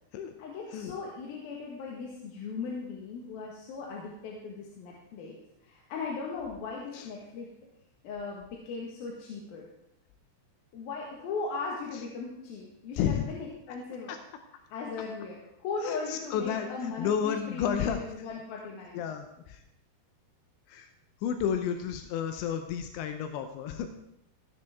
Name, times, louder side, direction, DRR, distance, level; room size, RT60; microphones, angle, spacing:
voice 1, 0.4-5.3 5.6-7.5 8.0-9.6 10.7-14.1 14.7-19.0, left 4 dB, 65° left, -2 dB, 3.0 m, -38 dB
voice 2, 15.8-18.0 18.9-19.6 20.7-20.9 21.2-23.9, left 8 dB, 90° left, 7 dB, 3.1 m, -31 dB
16.0 x 11.0 x 3.5 m, 0.82 s
omnidirectional pair, 5.0 m